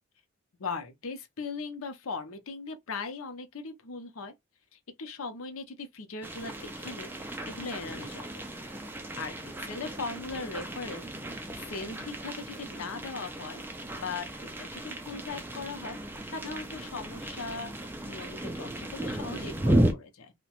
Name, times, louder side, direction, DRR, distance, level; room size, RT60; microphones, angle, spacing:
voice 1, 0.6-4.3 4.7-8.3 9.2-13.6 14.0-16.0 16.3-17.7 18.0-20.3, left 4 dB, 70° left, 0.6 m, -39 dB
sound 1, 6.2-19.9, right 1 dB, 10° right, 0.3 m, -34 dB
2.8 x 2.1 x 2.9 m
head